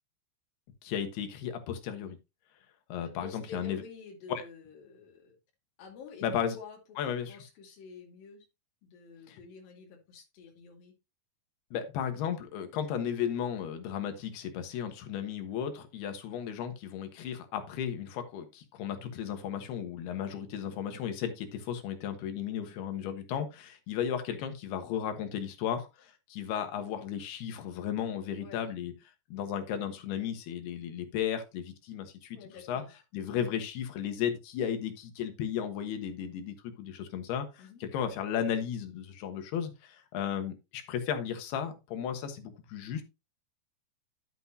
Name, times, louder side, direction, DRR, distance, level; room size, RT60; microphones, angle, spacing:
voice 1, 0.8-2.2 2.9-3.8 4.3-4.4 6.2-6.6 7.0-7.4 9.3-9.4 11.7-28.9 29.3-32.4 32.7-32.8 33.1-43.0, left 8 dB, 90° left, 3.3 m, -34 dB
voice 2, 3.0-5.4 5.8-6.3 6.6-7.0 7.3-8.5 8.8-10.9 28.4-28.7 32.3-32.9 37.6-37.8, left 5 dB, 65° left, 3.9 m, -49 dB
11.0 x 7.8 x 2.7 m
omnidirectional pair, 4.5 m